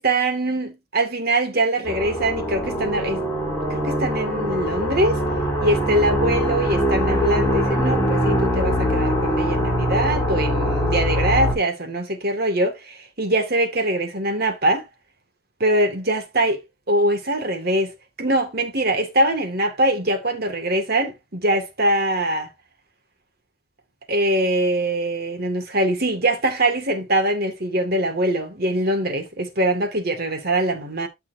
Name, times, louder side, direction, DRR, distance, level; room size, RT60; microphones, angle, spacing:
voice 1, 0.0-3.2 3.7-5.2 5.6-14.9 15.6-17.9 18.2-22.5 24.1-31.1, right 1 dB, 45° right, 2.0 m, -23 dB
sound 1, 1.8-11.5, equal, 15° left, 3.5 m, -22 dB
13.0 x 5.9 x 2.6 m
head